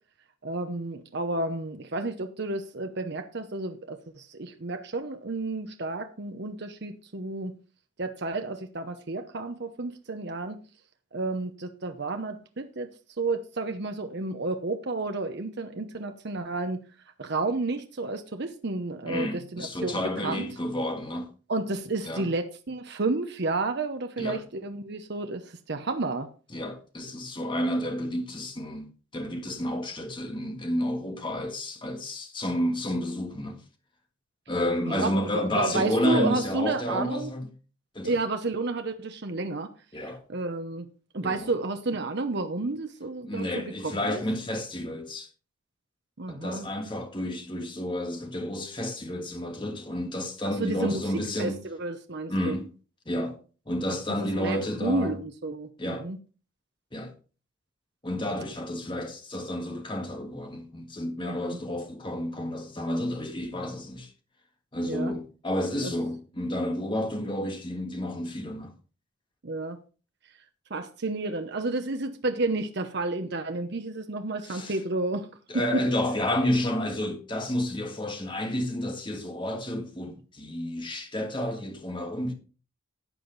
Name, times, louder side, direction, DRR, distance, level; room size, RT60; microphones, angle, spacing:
voice 1, 0.4-7.5 8.0-10.6 11.1-12.9 13.2-16.8 17.2-20.5 21.5-26.3 34.8-37.3 38.0-39.7 40.3-40.9 41.1-44.2 46.2-46.7 50.6-52.6 54.2-56.2 61.2-61.6 64.8-65.2 65.8-65.9 69.4-69.8 70.7-75.3 75.7-75.8, right 3 dB, 50° right, 0.8 m, -31 dB
voice 2, 19.1-21.3 22.1-22.3 24.2-24.4 26.5-33.6 34.5-37.5 38.0-38.2 39.9-40.2 41.2-41.5 43.2-45.3 46.3-51.6 52.3-52.7 53.1-53.4 53.7-55.2 55.8-56.1 56.9-57.1 58.0-64.1 64.7-68.7 74.4-74.8 75.5-82.3, left 1 dB, 25° left, 1.7 m, -30 dB
12.0 x 8.0 x 4.0 m
head